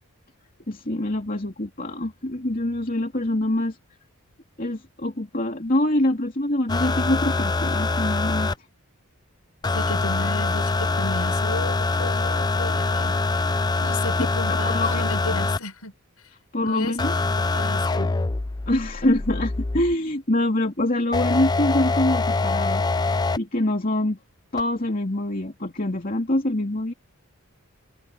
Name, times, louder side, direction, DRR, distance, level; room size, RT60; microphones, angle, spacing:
voice 1, 0.7-3.8 4.6-8.5 14.5-15.0 16.5-17.2 18.7-22.9 23.4-24.2 24.5-26.9, left 1 dB, 40° left, 2.8 m, -25 dB
sound 1, 6.7-8.6 9.6-15.6 17.0-20.0 21.1-23.4 24.6-24.7, left 3 dB, 20° left, 0.4 m, -24 dB
voice 2, 9.7-13.2 13.8-15.9 16.6-16.9 17.5-18.1, left 2 dB, 80° left, 6.7 m, -33 dB
head